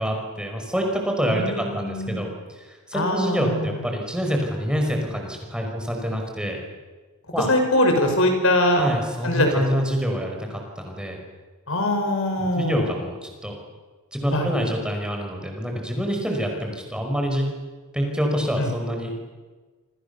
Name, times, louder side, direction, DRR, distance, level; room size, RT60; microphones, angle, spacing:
voice 1, 0.0-6.6 7.3-7.5 8.8-11.2 12.4-13.6 14.1-17.5 17.9-19.2, equal, 5° right, 2 dB, 5.4 m, -26 dB
voice 2, 1.3-2.3 2.9-3.8 7.5-8.8 9.2-9.9 11.7-12.8 14.3-14.5 18.6-18.7, left 1 dB, 65° left, 4 dB, 6.1 m, -22 dB
28.0 x 26.0 x 7.0 m, 1.3 s
head